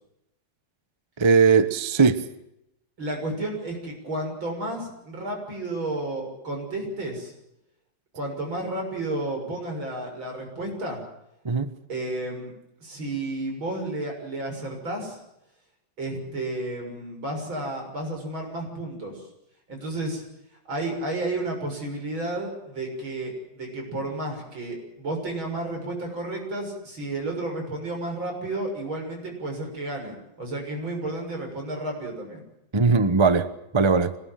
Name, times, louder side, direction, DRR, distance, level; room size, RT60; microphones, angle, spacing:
voice 1, 1.2-2.2 11.4-11.7 32.7-34.2, right 5 dB, 25° right, 0.6 m, -20 dB
voice 2, 3.0-7.3 8.1-11.0 11.9-12.5 12.8-15.2 16.0-19.2 19.7-20.2 20.7-32.4, right 2 dB, 70° right, 7.5 m, -32 dB
25.5 x 19.5 x 7.5 m
omnidirectional pair, 2.2 m